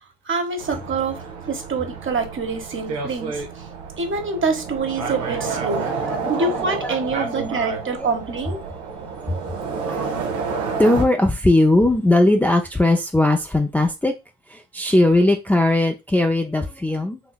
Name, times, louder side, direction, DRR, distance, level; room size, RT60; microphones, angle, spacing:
voice 1, 0.2-3.7 4.0-5.9 6.2-8.6, right 4 dB, 35° right, 1.0 m, -26 dB
sound 1, 0.6-11.0, right 5 dB, 80° right, 0.8 m, -30 dB
voice 2, 5.0-5.5 5.8-8.1 9.3-9.4 9.8-10.2 10.8-14.1 14.5-17.2, left 1 dB, 5° left, 0.5 m, -20 dB
4.0 x 2.8 x 2.3 m
hypercardioid pair, 50°, 35 cm